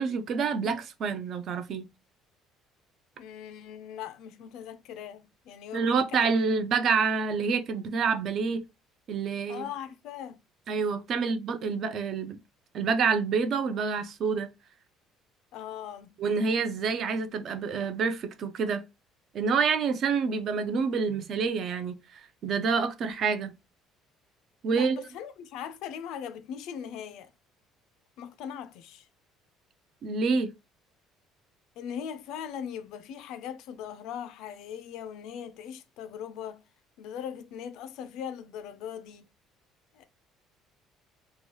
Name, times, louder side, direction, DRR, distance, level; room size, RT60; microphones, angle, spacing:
voice 1, 0.0-1.8 5.7-8.6 9.1-9.7 10.7-12.4 12.7-14.5 16.2-18.8 19.3-23.6 24.6-25.0 30.0-30.5, right 5 dB, 40° right, 0.4 m, -27 dB
voice 2, 3.2-6.5 9.5-10.4 15.5-16.2 24.7-27.3 28.2-29.1 31.8-36.6 37.0-39.3 39.9-40.0, left 8 dB, 65° left, 0.4 m, -40 dB
2.9 x 2.2 x 2.9 m
cardioid pair, 175°, 0 cm